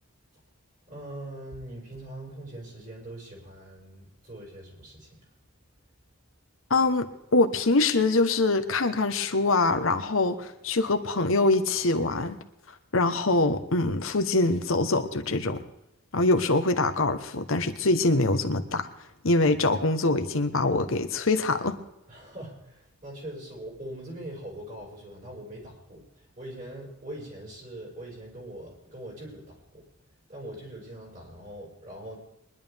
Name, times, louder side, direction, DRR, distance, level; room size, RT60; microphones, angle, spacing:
voice 1, 0.9-5.2 22.1-29.9 30.3-32.2, right 1 dB, 40° right, -3 dB, 5.7 m, -42 dB
voice 2, 6.7-12.4 12.9-15.6 16.1-18.9 19.2-21.8, left 2 dB, 65° left, 7 dB, 1.1 m, -24 dB
23.0 x 11.0 x 3.5 m, 0.85 s
head